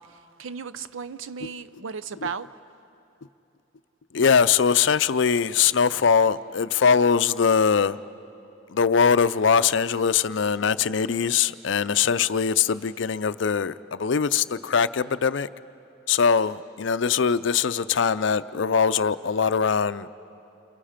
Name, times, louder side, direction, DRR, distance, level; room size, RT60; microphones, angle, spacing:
voice 1, 0.0-2.5, right 6 dB, 75° right, 14 dB, 0.6 m, -35 dB
voice 2, 4.1-8.0 8.7-15.5 16.1-20.1, left 6 dB, 65° left, 14 dB, 0.5 m, -22 dB
29.0 x 29.0 x 5.1 m, 3.0 s
head